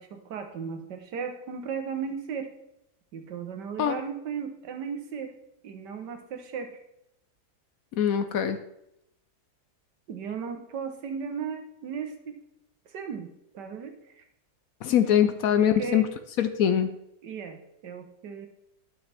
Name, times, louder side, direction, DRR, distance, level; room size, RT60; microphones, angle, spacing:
voice 1, 0.0-2.5 3.1-5.3 5.6-6.8 10.1-12.4 12.9-14.2 15.5-16.0 17.2-18.5, right 6 dB, 85° right, 6 dB, 1.7 m, -36 dB
voice 2, 8.0-8.6 14.8-16.1 16.4-16.9, left 9 dB, 70° left, 9 dB, 0.9 m, -23 dB
11.5 x 5.8 x 3.4 m, 0.82 s
omnidirectional pair, 1.8 m